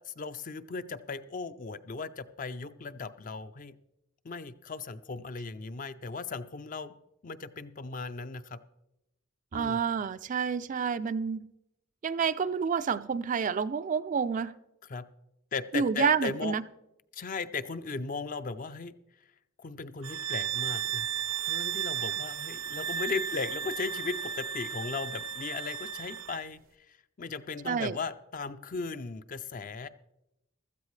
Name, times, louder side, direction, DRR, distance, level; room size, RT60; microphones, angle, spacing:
voice 1, 0.0-3.7 4.2-6.9 7.2-8.6 9.5-9.8 14.9-15.0 15.5-16.6 17.1-19.0 19.6-21.1 21.5-26.6 26.9-29.9, left 4 dB, 40° left, 0.5 m, -37 dB
voice 2, 9.5-11.5 12.0-14.5 15.7-16.6 27.7-28.0, right 6 dB, 40° right, 0.3 m, -29 dB
sound 1, 20.0-26.4, right 8 dB, 75° right, 0.7 m, -34 dB
15.5 x 13.5 x 3.2 m
head